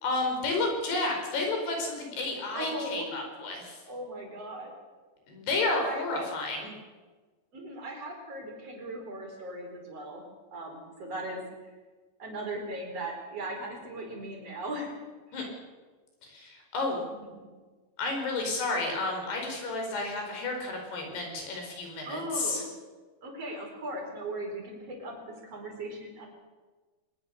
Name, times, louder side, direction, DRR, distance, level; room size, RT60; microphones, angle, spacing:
voice 1, 0.0-3.8 5.3-6.7 15.3-15.4 16.2-17.0 18.0-22.6, left 2 dB, 85° left, 2 dB, 7.0 m, -31 dB
voice 2, 2.5-3.1 3.8-4.7 5.7-6.3 7.5-10.2 10.5-11.4 12.2-15.0 17.4-17.5 22.1-22.7 23.2-26.3, right 1 dB, 40° right, 1 dB, 5.7 m, -38 dB
22.5 x 21.0 x 6.7 m, 1.3 s
omnidirectional pair, 4.6 m